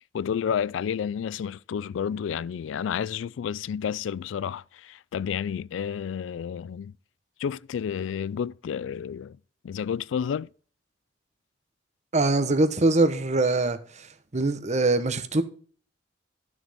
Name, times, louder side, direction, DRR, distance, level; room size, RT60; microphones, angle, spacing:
voice 1, 0.1-6.9 7.4-9.4 9.6-10.5, left 7 dB, 85° left, 0.3 m, -30 dB
voice 2, 12.1-14.1 14.3-15.4, right 2 dB, 40° right, 1.0 m, -23 dB
12.0 x 6.5 x 3.6 m
head